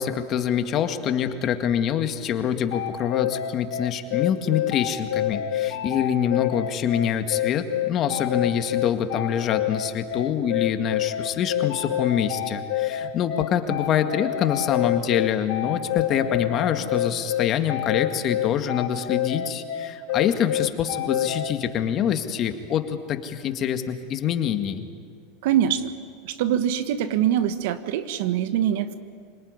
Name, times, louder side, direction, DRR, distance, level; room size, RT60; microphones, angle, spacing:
voice 1, 0.0-24.8, left 9 dB, 40° left, 7 dB, 1.9 m, -25 dB
sound 1, 2.7-21.5, left 11 dB, 75° left, 2.3 m, -27 dB
voice 2, 25.4-25.9 26.2-28.9, right 10 dB, 70° right, 11 dB, 1.5 m, -23 dB
26.5 x 19.0 x 9.8 m, 2.2 s
supercardioid pair, 125°, 0 cm